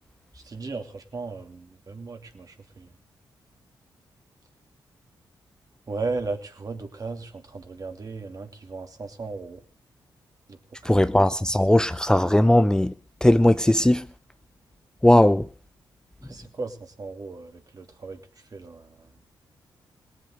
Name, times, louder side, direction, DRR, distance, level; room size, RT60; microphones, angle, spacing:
voice 1, 0.3-2.9 5.9-9.6 10.5-10.6 10.8-10.9 16.2-18.2 18.5-19.1, right 3 dB, 45° right, 2.8 m, -36 dB
voice 2, 10.8-12.9 13.2-14.0 15.0-15.4, left 1 dB, 10° left, 0.6 m, -18 dB
18.5 x 7.9 x 7.9 m
cardioid pair, 60°, 9 cm